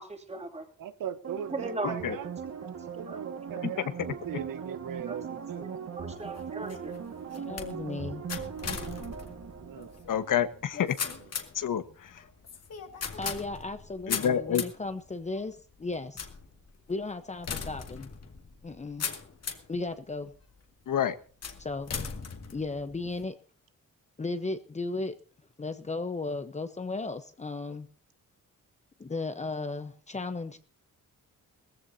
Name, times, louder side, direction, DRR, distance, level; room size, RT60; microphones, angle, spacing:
voice 1, 0.0-0.6 1.5-2.0 3.1-3.2 3.6-3.7 5.1-5.2 6.0-6.9, right 2 dB, 20° right, 2.7 m, -37 dB
voice 2, 0.8-5.7 9.6-10.0, right 9 dB, 85° right, 1.2 m, -40 dB
sound 1, 1.2-10.6 11.0-11.1, right 7 dB, 50° right, 1.8 m, -39 dB
sound 2, 6.2-19.8 20.3-20.8 21.4-23.2, left 6 dB, 50° left, 2.1 m, -39 dB
voice 3, 7.4-8.2 13.2-16.2 16.9-18.1 18.6-19.0 19.7-20.3 21.6-21.9 22.5-23.3 24.2-25.2 25.6-27.9 29.0-30.6, left 3 dB, 20° left, 0.9 m, -35 dB
voice 4, 10.1-10.9 11.5-12.1 14.1-14.6 20.9-21.1, left 9 dB, 75° left, 1.3 m, -28 dB
20.5 x 15.0 x 2.8 m
wide cardioid pair, 170°, 33 cm